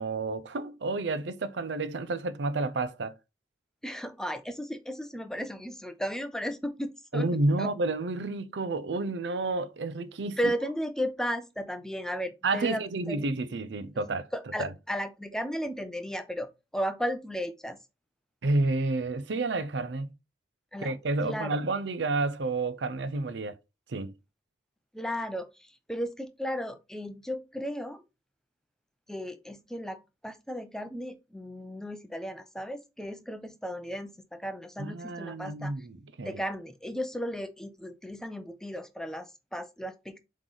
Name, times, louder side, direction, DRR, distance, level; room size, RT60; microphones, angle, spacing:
voice 1, 0.0-3.1 7.1-10.5 12.4-14.3 14.6-14.7 18.4-20.1 20.8-23.6 23.9-24.1 34.8-36.4, right 2 dB, 85° right, 0.6 m, -30 dB
voice 2, 3.8-7.3 7.6-7.7 10.4-13.2 14.3-17.8 20.7-20.9 21.2-21.6 24.9-28.0 29.1-35.9 36.2-40.2, equal, 5° left, 0.6 m, -35 dB
7.5 x 3.2 x 3.9 m
head